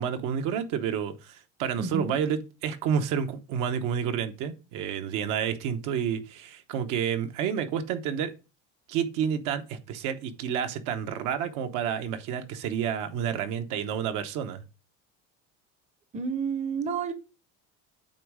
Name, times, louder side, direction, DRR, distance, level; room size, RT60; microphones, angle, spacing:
voice 1, 0.0-8.3 8.9-14.6, right 8 dB, 70° right, 1.0 m, -30 dB
voice 2, 1.7-2.2 16.1-17.1, right 5 dB, 20° right, 0.7 m, -30 dB
8.7 x 3.1 x 4.8 m
cardioid pair, 135°, 32 cm